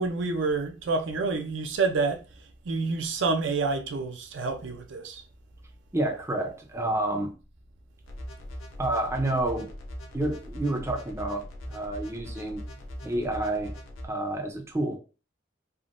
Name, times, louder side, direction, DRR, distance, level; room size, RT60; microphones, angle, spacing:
voice 1, 0.0-2.2 2.7-5.2, right 4 dB, 70° right, 0.4 m, -28 dB
voice 2, 5.9-7.3 8.8-9.7 10.1-12.6 13.0-13.8 14.0-15.0, right 1 dB, 15° right, 0.4 m, -29 dB
sound 1, 8.1-14.0, equal, 90° left, 0.6 m, -40 dB
3.5 x 2.2 x 2.4 m
head